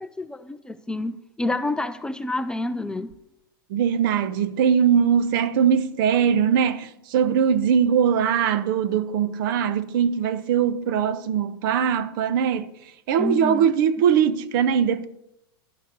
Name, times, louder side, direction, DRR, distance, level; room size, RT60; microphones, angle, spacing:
voice 1, 0.0-3.1 13.2-13.7, left 2 dB, 5° left, 0.3 m, -28 dB
voice 2, 3.7-12.7 13.1-15.1, right 8 dB, 60° right, 0.9 m, -21 dB
11.5 x 6.5 x 6.7 m
supercardioid pair, 140°, 13 cm